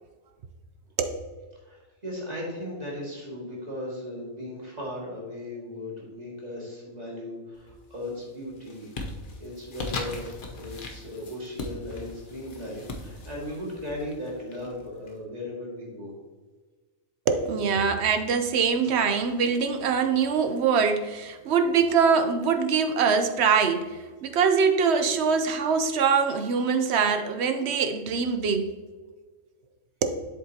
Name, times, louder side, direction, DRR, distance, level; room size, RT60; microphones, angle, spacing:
voice 1, 1.6-8.9 9.4-10.3 10.6-16.1, left 1 dB, 30° right, 2.1 m, -37 dB
sound 1, 7.6-8.1 8.5-15.1, left 2 dB, 45° left, 0.9 m, -39 dB
voice 2, 17.3-28.7 30.0-30.2, right 5 dB, 60° right, 0.9 m, -23 dB
7.6 x 7.6 x 2.8 m
omnidirectional pair, 1.4 m